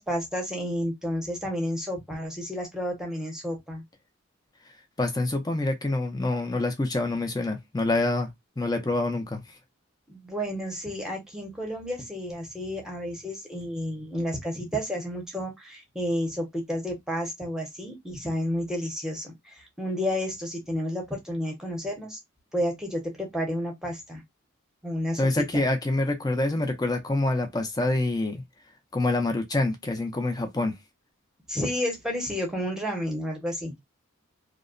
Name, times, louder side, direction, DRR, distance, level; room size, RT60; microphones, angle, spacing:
voice 1, 0.0-3.8 10.1-22.2 22.5-24.2 24.8-25.6 31.5-33.7, equal, 5° right, 0.8 m, -31 dB
voice 2, 5.0-8.3 8.6-9.4 25.2-28.4 28.9-30.7, left 2 dB, 20° left, 0.4 m, -26 dB
2.8 x 2.0 x 2.4 m
head